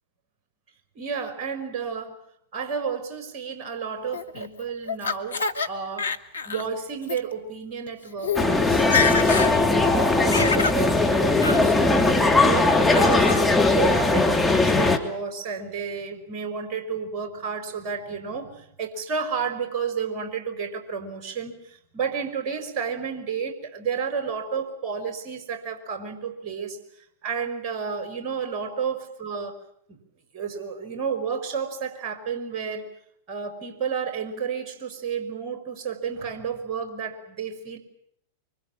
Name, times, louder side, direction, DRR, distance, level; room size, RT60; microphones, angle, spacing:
voice 1, 1.0-2.2 2.5-6.1 6.5-13.3 13.6-26.8 27.2-30.0 30.3-32.9 33.3-37.8, right 6 dB, 40° right, 7 dB, 5.1 m, -31 dB
Laughter, 4.1-5.7 6.0-6.7 7.0-7.2 7.9-8.0 8.2-8.5 8.7-9.5 9.9-10.8 11.4-11.6 12.0-12.5 12.9-13.4, left 5 dB, 75° left, 1.4 m, -27 dB
sound 1, 8.4-15.0, left 2 dB, 5° left, 2.8 m, -19 dB
25.0 x 24.5 x 7.4 m, 0.71 s
figure-of-eight pair, 90°, 0 cm